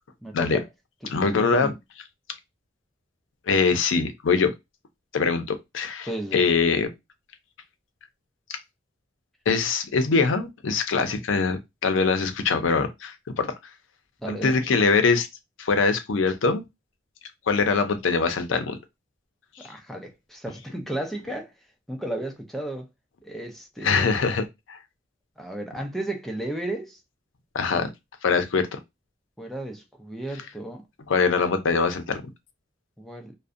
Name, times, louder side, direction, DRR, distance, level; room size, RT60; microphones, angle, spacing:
voice 1, 0.2-0.7 1.0-1.8 6.0-6.5 14.2-14.6 19.6-21.5 21.9-22.9 23.2-24.2 25.4-27.0 29.4-30.8 33.0-33.3, right 1 dB, ahead, 0.4 m, -34 dB
voice 2, 1.0-1.7 3.5-4.5 5.1-6.9 8.5-8.6 9.5-13.5 14.3-15.3 15.6-16.6 17.5-18.8 19.6-19.7 23.8-24.8 27.5-27.9 28.2-28.8 31.1-32.2, left 4 dB, 85° left, 0.5 m, -23 dB
2.5 x 2.1 x 2.4 m
head